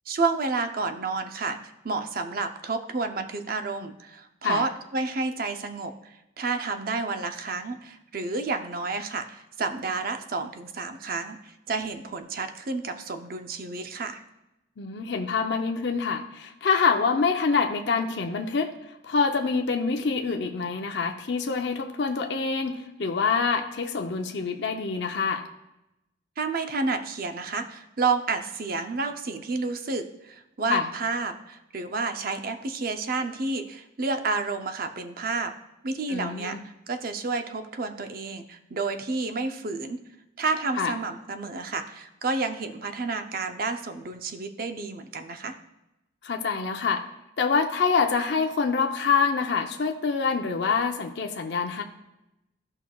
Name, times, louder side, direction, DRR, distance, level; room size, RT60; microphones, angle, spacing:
voice 1, 0.1-1.6 1.8-14.2 26.4-35.5 35.8-40.0 40.4-45.6, right 3 dB, 50° right, 7 dB, 0.6 m, -30 dB
voice 2, 14.8-25.5 30.7-30.9 36.1-36.6 40.8-40.9 46.2-47.0 47.4-51.8, left 5 dB, 65° left, 4 dB, 0.6 m, -26 dB
14.5 x 5.9 x 2.3 m, 0.92 s
head